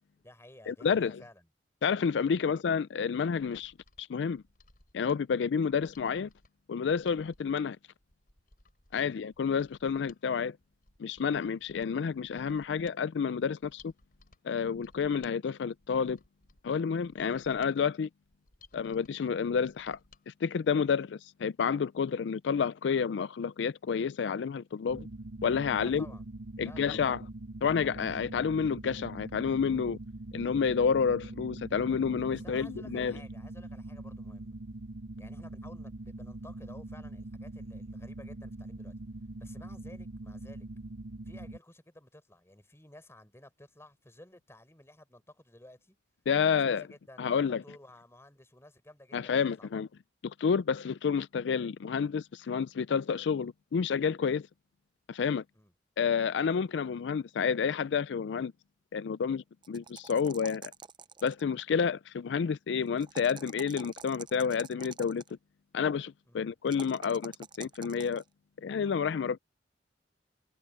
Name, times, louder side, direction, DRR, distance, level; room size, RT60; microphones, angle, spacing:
voice 1, 0.1-1.4 2.4-2.6 9.0-9.2 25.7-26.2 26.6-27.1 32.3-34.6 35.2-38.9 39.4-40.7 41.3-46.0 46.4-49.8 55.5-55.7 66.2-66.5, left 1 dB, 15° left, 4.1 m, -54 dB
voice 2, 0.7-1.2 1.8-4.4 4.9-6.3 6.7-7.8 8.9-10.6 11.0-13.9 14.4-16.2 16.6-18.1 18.7-20.0 20.3-25.1 25.4-26.1 26.6-27.2 27.6-30.0 30.3-33.2 46.3-46.8 47.2-47.6 49.1-49.9 50.2-54.5 55.1-55.4 56.0-58.5 58.9-60.7 61.2-65.2 65.7-67.3 67.6-68.2 68.6-69.4, left 6 dB, 80° left, 0.4 m, -29 dB
Mechanisms, 3.3-20.2 20.6-20.7, left 3 dB, 55° left, 4.4 m, -62 dB
sound 1, 24.9-41.6, right 2 dB, 85° right, 0.8 m, -43 dB
sound 2, 59.6-61.5 63.0-65.3 66.7-68.2, right 6 dB, 25° right, 0.5 m, -47 dB
head